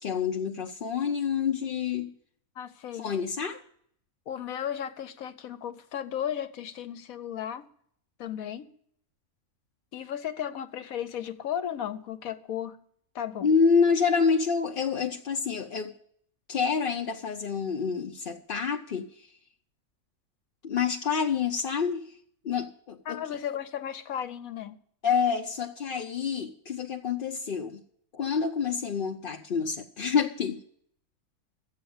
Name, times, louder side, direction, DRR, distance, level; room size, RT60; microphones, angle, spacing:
voice 1, 0.0-2.1 3.0-3.6 13.4-15.9 16.5-19.3 20.6-22.2 22.4-23.2 25.0-27.8 28.1-30.6, left 6 dB, 50° left, 0.7 m, -27 dB
voice 2, 2.6-3.1 4.3-7.7 8.2-8.7 9.9-12.8 13.1-13.5 23.1-24.8, left 9 dB, 70° left, 1.2 m, -35 dB
12.5 x 8.6 x 7.2 m
omnidirectional pair, 1.6 m